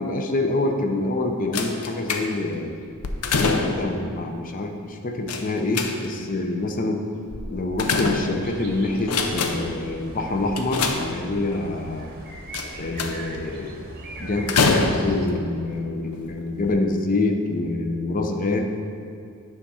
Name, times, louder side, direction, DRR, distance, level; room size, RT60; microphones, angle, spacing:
voice 1, 0.0-2.7 3.3-7.1 7.5-12.1 12.8-13.9 14.2-18.6, left 2 dB, 40° left, 3 dB, 0.6 m, -26 dB
sound 1, 1.5-2.6 3.0-4.0 5.3-6.3 7.3-8.6 9.0-9.8 10.6-11.5 12.5-13.4 14.5-15.3 16.1-16.3 16.6-16.7, left 4 dB, 90° left, 0.6 m, -25 dB
sound 2, 8.4-15.3, right 2 dB, 45° right, 0.8 m, -40 dB
8.9 x 3.6 x 5.5 m, 2.4 s
head